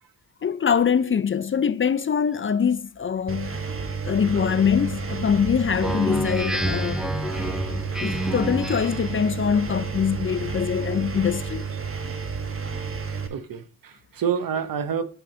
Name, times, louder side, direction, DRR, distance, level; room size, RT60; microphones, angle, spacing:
voice 1, 0.4-3.6 4.0-7.0 7.7-11.7, left 7 dB, 35° left, 0.4 m, -23 dB
Engine, 3.3-13.3, right 5 dB, 35° right, 1.1 m, -31 dB
Speech synthesizer, 5.8-9.1, equal, ahead, 1.1 m, -28 dB
voice 2, 12.5-15.0, right 7 dB, 65° right, 0.9 m, -29 dB
7.5 x 4.9 x 3.8 m
cardioid pair, 60°, 37 cm